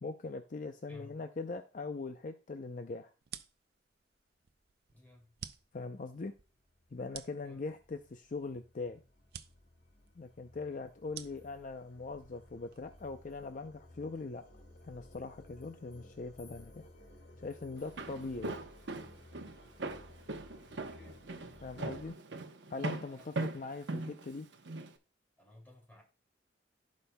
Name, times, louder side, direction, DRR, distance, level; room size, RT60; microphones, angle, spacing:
voice 1, 0.0-3.1 5.7-6.3 6.9-9.0 10.2-14.5 14.8-16.9 17.4-18.5 21.6-22.1 22.7-24.5, left 3 dB, 45° left, 0.5 m, -41 dB
voice 2, 0.9-1.2 4.9-5.4 7.4-7.6 10.5-10.8 20.7-21.2 23.1-23.5 25.4-26.0, left 1 dB, 10° left, 2.7 m, -57 dB
sound 1, 3.2-13.1, right 9 dB, 60° right, 0.5 m, -52 dB
sound 2, 5.2-5.3 5.7-22.1, left 1 dB, 70° left, 2.0 m, -58 dB
Walk footsteps, 17.8-24.9, right 2 dB, 80° right, 0.9 m, -40 dB
15.5 x 5.2 x 2.2 m
head